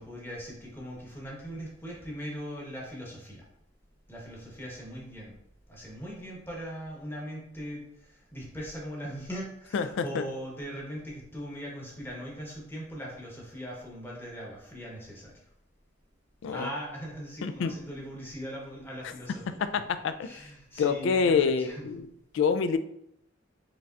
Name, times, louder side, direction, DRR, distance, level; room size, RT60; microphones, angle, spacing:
voice 1, 0.0-3.4 4.1-5.3 5.7-15.4 16.5-19.4 20.2-21.9, equal, 10° left, -3 dB, 1.1 m, -40 dB
voice 2, 9.7-10.2 16.4-16.7 17.4-17.7 19.0-19.1 19.6-20.5 20.8-22.1 22.3-22.8, left 5 dB, 70° left, 12 dB, 0.3 m, -27 dB
5.0 x 3.3 x 2.5 m, 0.78 s
head